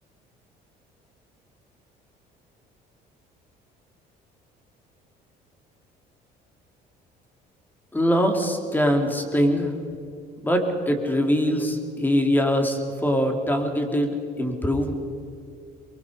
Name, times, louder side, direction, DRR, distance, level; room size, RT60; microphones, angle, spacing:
voice 1, 7.9-9.7 10.4-14.9, equal, 10° left, 4 dB, 3.4 m, -23 dB
23.5 x 23.5 x 5.3 m, 2.4 s
cardioid pair, 110°, 17 cm